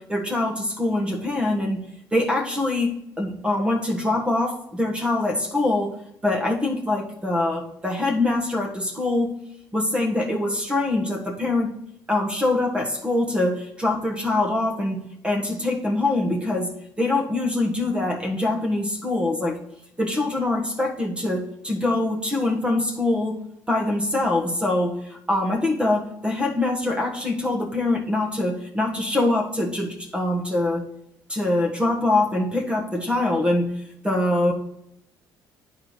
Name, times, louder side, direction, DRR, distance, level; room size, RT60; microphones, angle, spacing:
voice 1, 0.0-1.8 2.1-6.0 6.2-9.3 9.7-11.8 12.1-19.6 20.0-30.8 31.3-33.7 34.0-34.5, left 2 dB, 15° right, 1 dB, 1.4 m, -24 dB
9.4 x 4.9 x 4.0 m, 0.78 s
cardioid pair, 100°, 8 cm